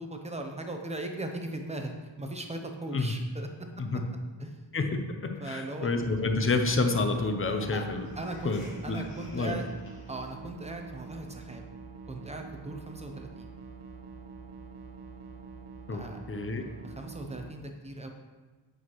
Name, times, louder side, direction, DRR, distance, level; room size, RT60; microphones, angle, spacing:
voice 1, 0.0-1.9 2.2-3.5 4.4-4.6 5.4-5.9 7.7-7.9 8.2-8.6 8.8-9.6 10.1-11.6 12.1-13.5 15.9-16.2 16.8-18.1, right 2 dB, 15° right, 3 dB, 0.7 m, -38 dB
voice 2, 4.7-8.1 8.4-9.0 9.3-9.6 15.9-16.0 16.3-16.7, left 3 dB, 30° left, 6 dB, 0.6 m, -29 dB
sound 1, 5.9-17.5, right 4 dB, 60° right, 1.0 m, -46 dB
sound 2, 7.4-10.3, left 2 dB, 70° left, 1.7 m, -50 dB
8.5 x 6.4 x 3.1 m, 1.3 s
wide cardioid pair, 160°, 47 cm